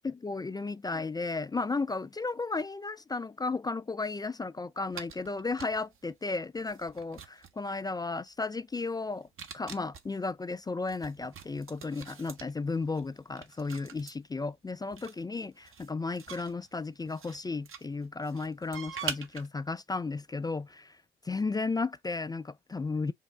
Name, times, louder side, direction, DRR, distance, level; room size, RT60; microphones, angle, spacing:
voice 1, 0.0-9.3 9.5-21.0 21.2-23.1, left 3 dB, 15° left, 0.3 m, -34 dB
sound 1, 4.9-6.0 6.6-7.7 9.2-10.1 10.9-14.1 14.9-17.4 17.7-19.5, right 6 dB, 45° right, 0.9 m, -44 dB
5.4 x 2.1 x 3.5 m
hypercardioid pair, 50°, 29 cm